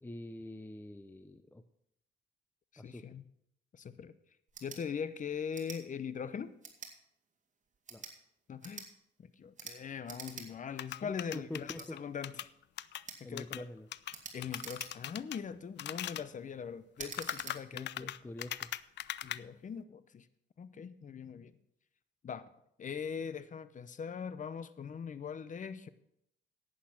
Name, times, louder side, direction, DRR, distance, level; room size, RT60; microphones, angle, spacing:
voice 1, 0.0-1.6 2.8-3.2 7.9-8.1 11.0-12.0 13.2-13.9 17.7-18.7, left 1 dB, 10° left, 9 dB, 0.6 m, -46 dB
voice 2, 2.7-3.2 3.7-4.1 4.6-6.5 8.5-8.9 9.2-12.5 13.2-13.6 14.3-18.1 19.2-20.3 20.6-21.6 22.2-22.5 22.8-25.9, left 7 dB, 40° left, 14 dB, 0.8 m, -41 dB
sound 1, 4.5-4.8 5.5-5.8 6.6-6.9 7.7-8.2 8.6-8.9 9.5-9.8 10.0-10.5 10.8-10.9 11.7-11.9 13.0-13.2 14.1-15.2 15.7-16.0 17.0-17.6, right 5 dB, 40° right, 2.2 m, -46 dB
sound 2, 10.8-13.0 13.4-13.6 13.9-14.1 14.4-15.4 15.8-16.3 17.0-19.4, left 12 dB, 60° left, 0.4 m, -40 dB
11.5 x 8.6 x 5.9 m, 0.75 s
cardioid pair, 90°, 20 cm